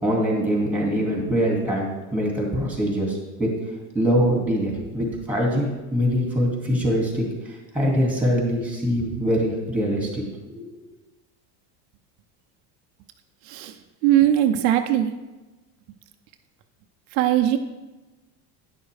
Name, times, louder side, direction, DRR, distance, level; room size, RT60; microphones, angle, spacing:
voice 1, 0.0-3.5 3.9-10.2 10.5-10.7, equal, 5° right, -1 dB, 2.4 m, -23 dB
voice 2, 14.0-15.1 17.1-17.6, right 12 dB, 80° right, 6 dB, 0.8 m, -19 dB
9.9 x 6.5 x 3.4 m, 1.1 s
supercardioid pair, 110°, 48 cm